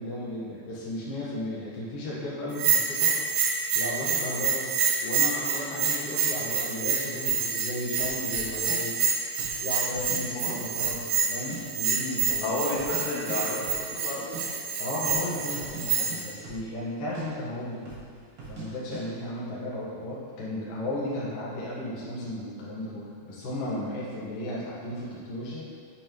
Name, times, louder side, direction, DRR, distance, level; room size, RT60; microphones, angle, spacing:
voice 1, 0.0-3.1 3.7-4.8 5.0-12.6 14.8-17.9 18.4-25.6, left 1 dB, 65° left, -8 dB, 2.6 m, -35 dB
Bell, 2.5-16.3, right 6 dB, 75° right, 2.3 m, -28 dB
sound 1, 8.0-8.2 8.7-8.8 9.3-9.6 9.9-10.5 10.8-11.6 11.9-12.0 12.2-13.0 13.3-13.4 13.6-13.8 14.1-14.4 14.9-15.3 15.5-16.9 17.1-17.3 17.8-18.1 18.4-18.7 18.9-19.0, right 5 dB, 55° right, 1.8 m, -42 dB
voice 2, 12.4-14.4, left 2 dB, 80° left, -2 dB, 3.0 m, -31 dB
8.5 x 5.3 x 3.0 m, 2.2 s
omnidirectional pair, 4.6 m